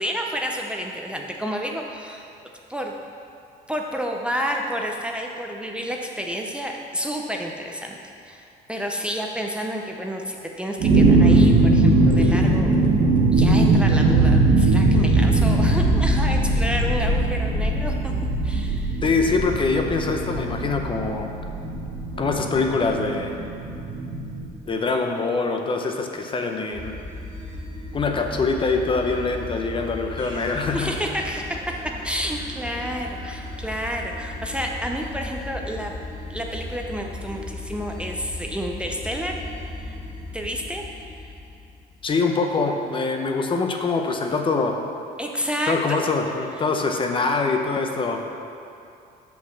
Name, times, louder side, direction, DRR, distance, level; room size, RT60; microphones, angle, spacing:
voice 1, 0.0-2.3 2.7-2.9 3.7-7.9 8.3-12.7 13.3-18.1 18.4-19.0 30.7-31.4 32.0-35.9 36.3-39.3 39.9-40.0 40.3-40.8 45.2-45.7, equal, 5° right, 0 dB, 0.6 m, -30 dB
sound 1, 10.8-24.5, right 2 dB, 75° right, 1.1 m, -20 dB
sound 2, 11.9-13.4 14.6-16.9, right 4 dB, 55° right, 1.0 m, -32 dB
voice 2, 19.0-21.3 22.2-23.3 24.7-26.9 27.9-30.9 42.0-44.7 45.7-48.2, left 4 dB, 30° left, 3 dB, 0.7 m, -24 dB
sound 3, 26.7-42.1, left 2 dB, 25° right, 1.7 m, -36 dB
6.3 x 5.9 x 5.8 m, 2.6 s
cardioid pair, 110°, 17 cm